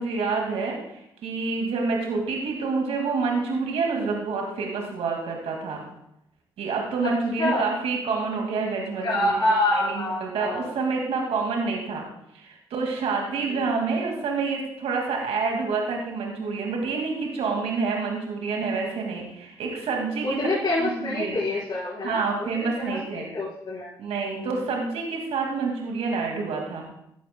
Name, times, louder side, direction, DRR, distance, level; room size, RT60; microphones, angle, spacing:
voice 1, 0.0-5.8 6.6-9.4 9.7-12.0 12.3-20.5 20.8-21.5 22.0-23.3 24.0-26.9, right 4 dB, 65° right, 1 dB, 2.1 m, -28 dB
voice 2, 9.0-10.7 20.2-22.3 22.8-23.9 24.4-24.5, left 2 dB, 40° left, -8 dB, 4.5 m, -26 dB
15.5 x 11.0 x 2.2 m, 0.79 s
hypercardioid pair, 45°, 11 cm